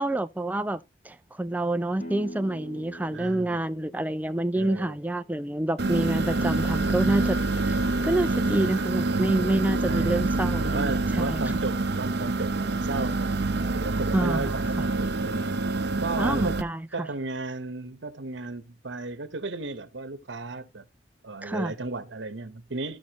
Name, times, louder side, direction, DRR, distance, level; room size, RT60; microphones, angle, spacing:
voice 1, 0.0-7.4 7.6-7.8 8.0-11.4 14.1-14.6 16.2-17.1 21.4-21.7, right 1 dB, 10° right, 0.4 m, -28 dB
sound 1, 2.0-7.6, equal, 45° left, 1.4 m, -46 dB
voice 2, 3.1-3.6 4.5-5.0 9.1-9.4 9.8-10.2 10.7-13.3 13.7-15.6 16.0-16.6 16.9-20.8 21.2-23.0, right 3 dB, 85° right, 1.0 m, -34 dB
sound 2, 5.8-16.6, right 2 dB, 65° right, 0.8 m, -26 dB
15.0 x 5.3 x 2.9 m
head